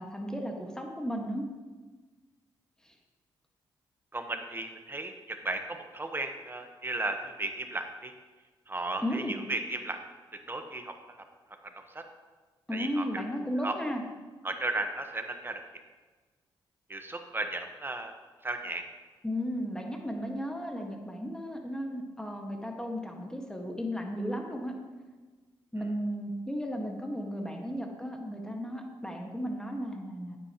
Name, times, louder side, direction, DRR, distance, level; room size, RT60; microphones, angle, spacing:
voice 1, 0.0-1.4 2.8-2.9 9.0-9.3 12.7-14.0 19.2-24.8 25.7-30.4, equal, 5° left, 2 dB, 1.6 m, -34 dB
voice 2, 4.1-8.1 8.7-10.0 10.5-10.9 11.6-12.0 12.7-13.2 13.6-13.7 14.4-15.6 16.9-18.1 18.4-18.8, right 2 dB, 25° right, 6 dB, 1.1 m, -35 dB
9.4 x 8.4 x 3.0 m, 1.3 s
cardioid pair, 60°, 9 cm